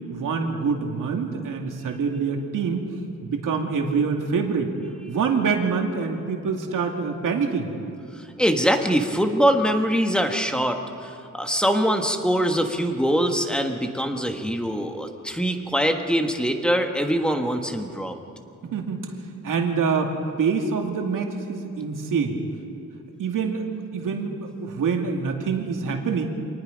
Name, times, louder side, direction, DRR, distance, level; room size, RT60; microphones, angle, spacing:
voice 1, 0.1-3.0 3.2-4.7 5.1-7.7 18.6-19.1 19.4-20.1 20.4-22.4 23.2-23.7 23.9-26.3, right 5 dB, 85° right, 2 dB, 2.4 m, -25 dB
voice 2, 8.2-18.2, equal, 5° left, 4 dB, 1.5 m, -23 dB
26.0 x 19.5 x 5.2 m, 2.7 s
wide cardioid pair, 135°, 31 cm